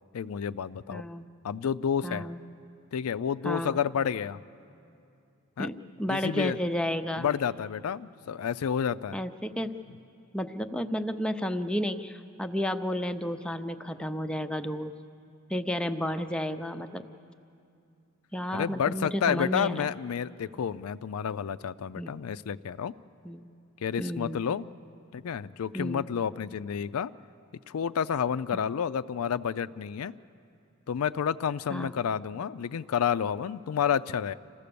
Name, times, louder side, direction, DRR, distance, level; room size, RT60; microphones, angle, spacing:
voice 1, 0.1-1.0 1.4-2.3 2.9-4.4 5.6-5.7 6.1-6.6 7.2-9.2 18.5-22.9 23.8-24.7 25.1-27.1 27.7-30.1 30.9-34.3, left 7 dB, 85° left, 15 dB, 0.4 m, -30 dB
voice 2, 0.9-1.3 2.0-2.4 3.4-3.8 5.6-7.3 9.1-9.7 10.3-14.9 15.5-17.0 18.3-19.9 22.0-22.1 23.2-23.5 24.0-24.4 25.7-26.0 31.7-31.9, equal, 5° left, 7 dB, 0.5 m, -32 dB
27.5 x 15.0 x 6.8 m, 2.6 s
head